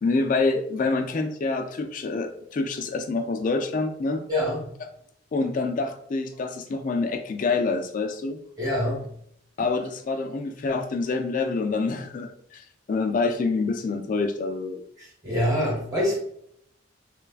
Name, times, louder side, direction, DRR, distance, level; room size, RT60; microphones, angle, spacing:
voice 1, 0.0-4.2 4.8-4.9 5.3-8.4 9.6-14.8, left 3 dB, 45° left, 7 dB, 0.3 m, -27 dB
voice 2, 4.3-4.6 8.6-9.0 15.2-16.2, left 1 dB, 20° right, -4 dB, 1.0 m, -24 dB
3.1 x 2.3 x 2.4 m, 0.67 s
head